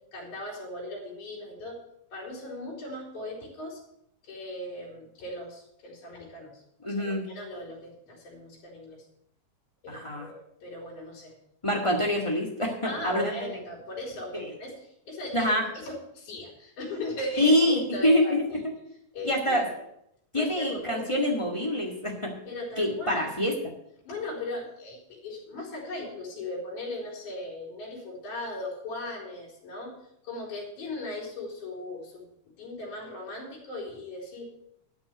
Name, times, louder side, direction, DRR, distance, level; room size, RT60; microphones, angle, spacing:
voice 1, 0.1-1.8 2.1-3.8 4.2-9.1 9.8-11.3 12.8-18.6 19.1-19.6 20.3-21.1 22.5-23.4 24.1-29.9 30.2-32.2 32.6-34.5, left 1 dB, 70° left, -3 dB, 4.5 m, -38 dB
voice 2, 6.8-7.3 9.9-10.3 11.6-13.5 14.3-14.5 15.3-15.6 17.4-18.6 19.2-19.7 20.3-22.3 22.8-23.6, left 1 dB, 20° left, 0 dB, 0.7 m, -25 dB
11.5 x 6.1 x 8.0 m, 0.75 s
omnidirectional pair, 3.7 m